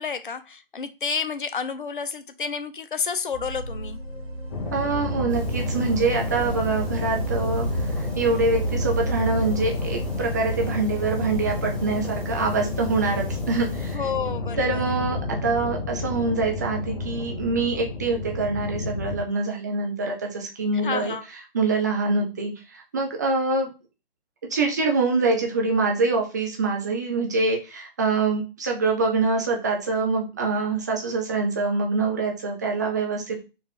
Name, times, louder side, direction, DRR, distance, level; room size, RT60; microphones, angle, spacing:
voice 1, 0.0-4.0 13.9-14.8 20.8-21.2, left 6 dB, 60° left, 0.6 m, -30 dB
sound 1, 3.3-13.1, right 3 dB, 80° left, 1.7 m, -33 dB
sound 2, 4.5-19.2, left 2 dB, 30° left, 0.9 m, -30 dB
voice 2, 4.7-14.0 14.6-23.7 24.5-33.4, right 3 dB, 20° right, 0.5 m, -25 dB
sound 3, 5.3-13.9, equal, 5° left, 0.8 m, -43 dB
4.2 x 2.5 x 4.3 m
figure-of-eight pair, 135°, 30 cm